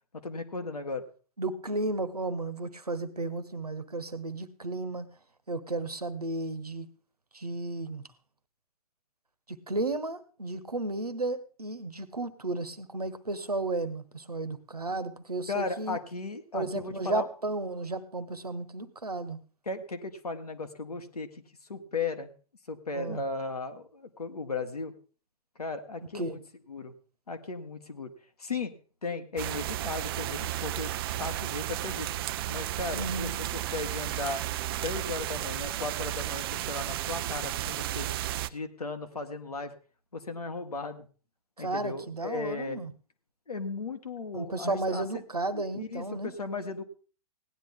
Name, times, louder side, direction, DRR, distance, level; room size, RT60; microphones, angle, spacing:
voice 1, 0.1-1.0 15.5-17.3 19.6-21.4 21.7-22.3 22.7-24.9 25.6-26.4 26.7-26.9 27.3-28.1 28.4-28.7 29.0-30.9 31.2-32.1 32.5-34.4 34.8-38.1 38.5-39.7 40.1-41.0 41.6-42.8 43.5-45.2 45.5-46.8, left 3 dB, 80° left, 6 dB, 1.7 m, -36 dB
voice 2, 1.4-5.1 5.5-6.9 7.3-8.0 9.5-16.0 16.5-19.4 22.9-23.2 26.0-26.4 32.9-33.3 41.6-42.9 44.3-46.3, right 2 dB, 90° right, 12 dB, 1.2 m, -33 dB
sound 1, 29.4-38.5, right 14 dB, 40° right, 0.6 m, -33 dB
17.5 x 10.5 x 3.7 m, 0.38 s
figure-of-eight pair, 115°, 19 cm